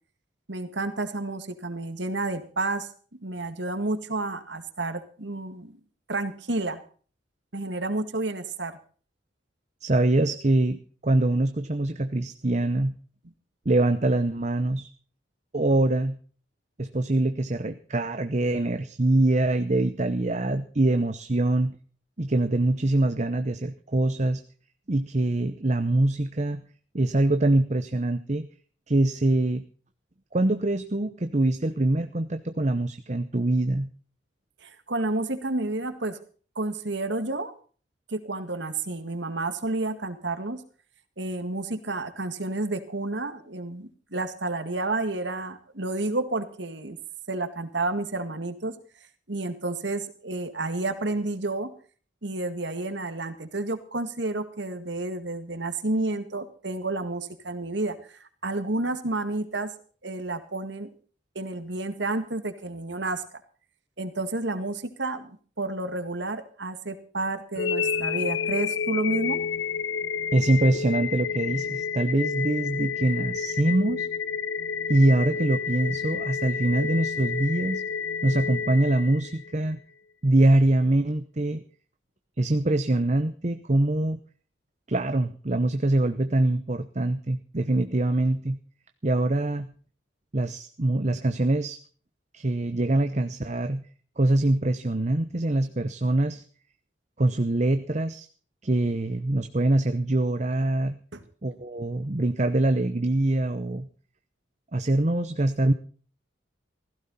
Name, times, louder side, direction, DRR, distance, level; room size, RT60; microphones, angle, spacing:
voice 1, 0.5-2.9 3.2-5.8 6.1-6.8 7.5-8.7 34.6-36.2 36.6-37.5 38.1-40.6 41.2-47.0 47.3-48.8 49.3-51.7 52.2-59.7 60.0-60.9 61.4-63.2 64.0-69.4 101.1-101.2, right 2 dB, 65° right, 10 dB, 1.9 m, -30 dB
voice 2, 9.8-12.9 13.6-14.9 15.5-16.2 16.8-21.8 22.2-24.4 24.9-26.6 26.9-28.5 28.9-29.6 30.3-33.9 70.3-74.1 74.9-77.8 78.2-79.8 80.2-81.6 82.4-84.2 84.9-88.6 89.0-89.7 90.3-91.8 92.3-93.8 94.2-96.4 97.2-98.3 98.6-101.0 101.4-103.9 104.7-105.7, right 2 dB, 35° right, 9 dB, 0.8 m, -24 dB
sound 1, 67.6-79.6, left 6 dB, 75° left, 0.6 m, -30 dB
16.5 x 15.5 x 4.2 m, 0.42 s
head